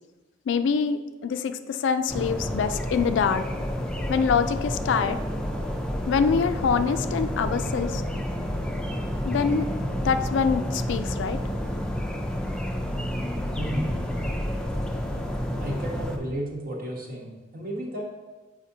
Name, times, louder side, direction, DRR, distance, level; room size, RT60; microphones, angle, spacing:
voice 1, 0.5-3.4 4.1-5.2 6.1-8.0 9.2-9.7 10.0-11.4, left 6 dB, 70° left, 10 dB, 0.3 m, -25 dB
sound 1, 2.1-16.2, equal, 5° left, 0.4 m, -30 dB
voice 2, 13.6-13.9 15.6-18.0, right 1 dB, 50° right, 0 dB, 1.1 m, -33 dB
7.3 x 4.9 x 2.7 m, 1.2 s
head